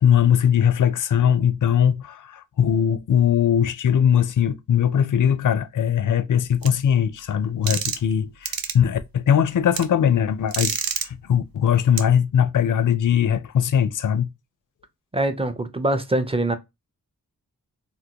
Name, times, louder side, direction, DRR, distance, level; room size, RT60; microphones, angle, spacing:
voice 1, 0.0-14.3, left 8 dB, 60° left, 0.4 m, -20 dB
sound 1, 6.6-6.7 7.7-8.1 8.5-8.7 9.7-9.8 10.5-11.1 12.0-12.1, right 7 dB, 70° right, 0.5 m, -26 dB
voice 2, 15.1-16.6, right 1 dB, 15° right, 0.5 m, -23 dB
3.6 x 2.1 x 2.7 m
wide cardioid pair, 80°, 36 cm